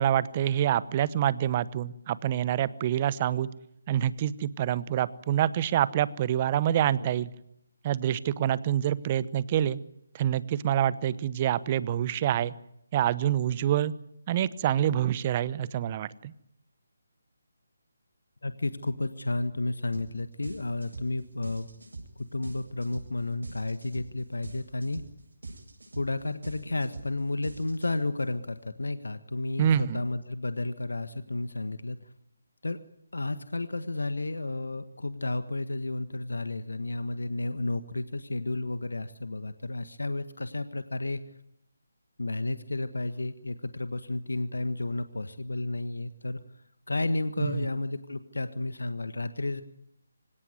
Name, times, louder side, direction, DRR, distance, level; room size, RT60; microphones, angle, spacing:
voice 1, 0.0-3.5 3.9-7.3 7.8-9.8 10.1-12.5 12.9-13.9 14.3-16.3 29.6-30.0 47.4-47.6, right 11 dB, 30° right, 19 dB, 1.0 m, -26 dB
voice 2, 18.4-21.7 22.2-25.0 25.9-32.1 32.6-32.8 33.1-41.2 42.2-46.4 46.9-49.6, left 2 dB, 75° left, 11 dB, 1.5 m, -32 dB
sound 1, 19.9-20.1 20.4-28.2, right 3 dB, 75° right, 7.9 m, -43 dB
25.5 x 18.0 x 9.6 m, 0.80 s
figure-of-eight pair, 150°, 0 cm